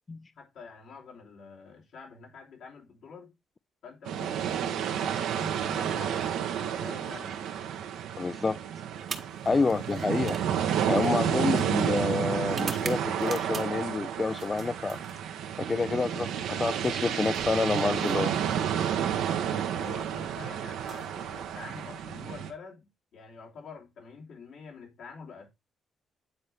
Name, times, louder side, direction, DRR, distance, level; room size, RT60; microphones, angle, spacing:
voice 1, 0.4-3.3 3.8-7.4 9.6-9.9 16.0-16.3 19.7-25.5, left 5 dB, 75° left, 3.2 m, -47 dB
sound 1, 4.1-22.5, right 9 dB, 90° right, 1.0 m, -31 dB
voice 2, 8.2-8.6 9.5-10.4 10.9-15.0 15.6-16.3 16.6-18.3, left 4 dB, 30° left, 0.3 m, -28 dB
sound 2, 9.0-13.9 14.3-15.6 16.8-18.6 19.7-19.9 20.7-21.9, right 5 dB, 45° right, 1.0 m, -44 dB
9.5 x 4.3 x 3.4 m
cardioid pair, 90°, 0 cm